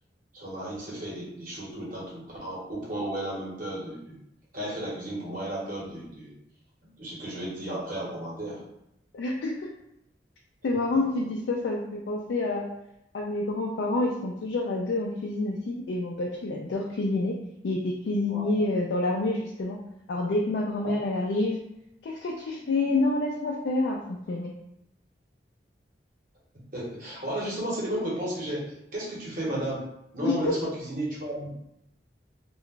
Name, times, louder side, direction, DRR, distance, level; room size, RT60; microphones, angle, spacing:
voice 1, 0.3-4.2 4.5-6.3 6.9-8.6 10.9-11.0 18.3-18.6 20.8-20.9 22.6-22.9 26.7-29.9 30.1-31.6, right 1 dB, 50° right, -6 dB, 1.1 m, -34 dB
voice 2, 9.1-9.7 10.6-12.7 13.1-17.3 17.6-19.8 20.1-21.6 22.0-24.5 30.2-30.6, left 2 dB, 80° left, -1 dB, 0.4 m, -28 dB
2.4 x 2.2 x 3.7 m, 0.81 s
head